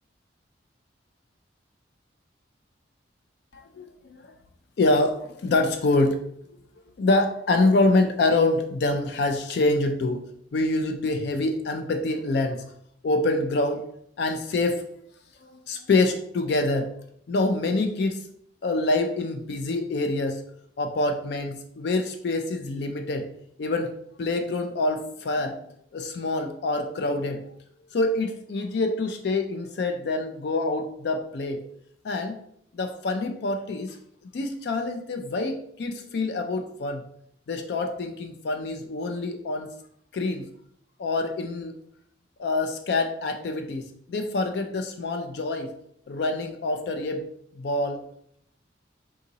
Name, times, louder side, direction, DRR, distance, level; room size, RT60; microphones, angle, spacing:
voice 1, 3.5-4.3 4.8-6.2 7.0-10.2 10.5-12.6 13.0-13.9 14.2-14.8 15.4-16.9 17.3-18.3 18.6-20.4 20.8-23.3 23.6-23.9 24.2-25.6 25.9-27.4 27.9-31.6 32.0-32.4 32.7-34.0 34.3-37.0 37.5-39.7 40.1-40.5 41.0-41.7 42.4-45.7 46.1-47.2 47.6-48.0, left 2 dB, 55° left, 5 dB, 0.3 m, -26 dB
3.7 x 2.8 x 3.8 m, 0.71 s
head